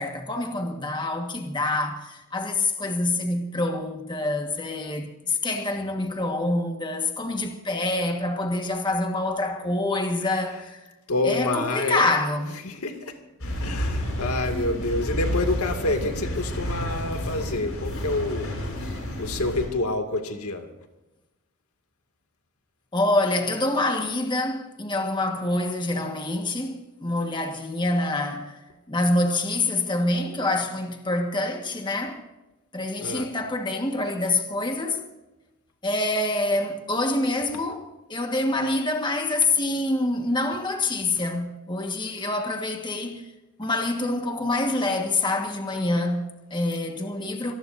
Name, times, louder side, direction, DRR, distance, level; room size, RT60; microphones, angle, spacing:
voice 1, 0.0-10.9 11.2-12.6 22.9-32.2 32.7-35.0 35.8-43.3 43.6-47.5, left 2 dB, 20° left, 1.6 m, -26 dB
voice 2, 11.1-12.0 12.6-13.2 13.6-18.5 19.2-20.7 33.0-33.3, left 2 dB, 90° left, 2.3 m, -27 dB
sound 1, 13.4-19.6, equal, 75° left, 7.1 m, -30 dB
26.0 x 19.5 x 2.7 m
head